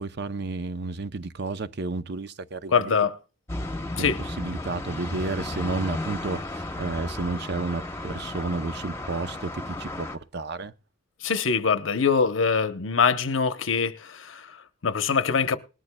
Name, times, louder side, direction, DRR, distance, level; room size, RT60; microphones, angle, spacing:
voice 1, 0.0-3.1 4.0-4.1 4.4-10.7, right 3 dB, 60° right, 0.7 m, -32 dB
voice 2, 2.7-3.2 4.0-4.2 11.2-15.6, left 5 dB, 90° left, 0.9 m, -24 dB
sound 1, 3.5-10.2, left 2 dB, 15° left, 0.9 m, -34 dB
19.5 x 13.0 x 2.3 m
head